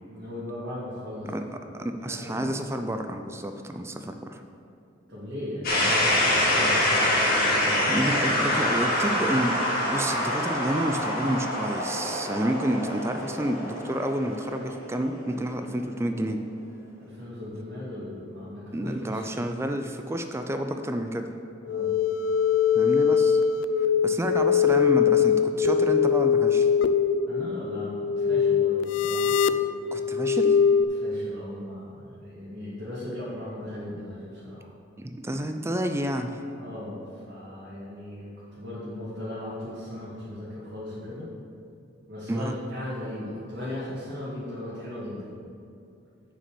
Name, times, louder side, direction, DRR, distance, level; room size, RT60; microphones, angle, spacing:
voice 1, 0.1-1.3 1.6-1.7 2.1-2.6 5.1-8.1 8.6-9.2 17.0-19.4 21.6-21.9 27.3-29.4 30.9-34.7 36.6-41.3 42.1-45.3, left 1 dB, 70° right, -11 dB, 2.4 m, -37 dB
voice 2, 1.8-4.4 7.9-9.6 9.9-16.4 18.7-21.3 22.7-23.4 24.0-26.7 29.9-30.6 35.0-36.3 42.3-42.5, right 1 dB, 15° right, 6 dB, 0.4 m, -29 dB
sound 1, 5.6-15.5, left 1 dB, 50° left, 2.3 m, -26 dB
sound 2, 21.7-30.8, left 7 dB, 75° left, 0.3 m, -22 dB
6.8 x 6.1 x 6.8 m, 2.5 s
head